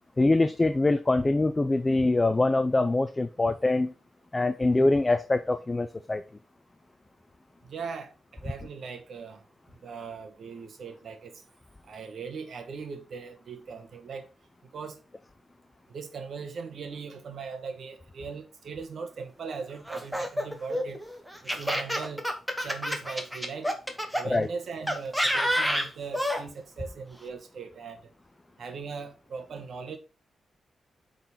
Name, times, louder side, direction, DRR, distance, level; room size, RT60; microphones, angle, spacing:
voice 1, 0.2-3.9 4.3-6.2 24.3-24.5, left 2 dB, 15° left, 0.4 m, -24 dB
voice 2, 7.7-8.1 8.4-9.4 9.8-11.4 11.8-14.3 14.7-15.0 15.9-21.0 21.4-22.2 22.6-23.7 24.1-28.0 28.6-30.0, right 5 dB, 60° right, 1.3 m, -39 dB
Laughter, 19.9-24.2 24.9-26.4, equal, 5° right, 1.0 m, -28 dB
8.3 x 4.0 x 4.3 m
wide cardioid pair, 150°, 0 cm